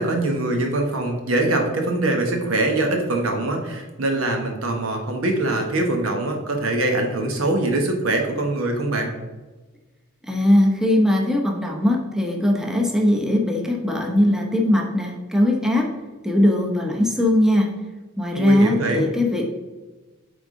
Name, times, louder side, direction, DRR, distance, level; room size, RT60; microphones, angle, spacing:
voice 1, 0.0-9.1 18.3-19.0, right 2 dB, 85° right, 3 dB, 1.2 m, -23 dB
voice 2, 10.3-15.9 16.2-17.7 18.2-19.5, left 1 dB, 5° right, 1 dB, 0.7 m, -20 dB
8.6 x 3.7 x 3.7 m, 1.2 s
head